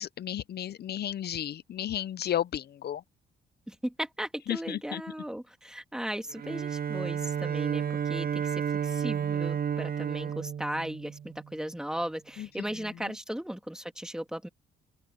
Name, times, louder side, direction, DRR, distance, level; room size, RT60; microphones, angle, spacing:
voice 1, 0.0-3.0 4.5-5.0 12.4-12.5, left 11 dB, 55° left, 0.6 m, -33 dB
voice 2, 3.7-14.5, equal, 5° right, 2.9 m, -37 dB
Bowed string instrument, 6.3-11.5, right 8 dB, 50° right, 0.8 m, -31 dB
open air
cardioid pair, 90°, 20 cm